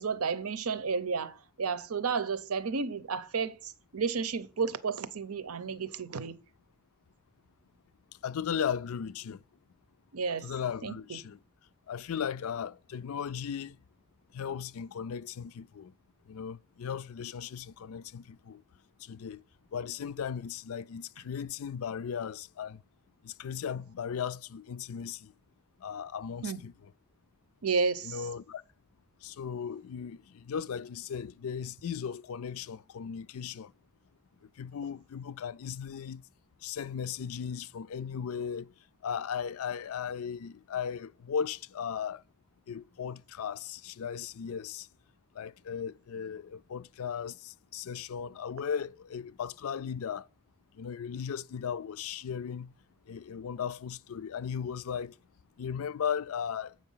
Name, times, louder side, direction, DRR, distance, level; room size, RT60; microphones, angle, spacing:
voice 1, 0.0-6.4 10.1-10.5 10.8-11.2 26.4-26.6 27.6-28.2, right 5 dB, 90° right, 0.7 m, -32 dB
voice 2, 8.2-9.4 10.4-11.4 11.9-13.8 14.3-15.9 16.3-18.6 19.0-19.4 19.7-22.8 23.2-25.3 25.8-26.9 28.0-28.6 29.2-33.7 34.6-36.2 36.6-38.7 39.0-42.2 42.7-44.9 45.4-50.3 50.8-52.7 53.1-55.1 55.6-56.7, left 7 dB, 75° left, 0.4 m, -36 dB
7.7 x 5.2 x 5.6 m
head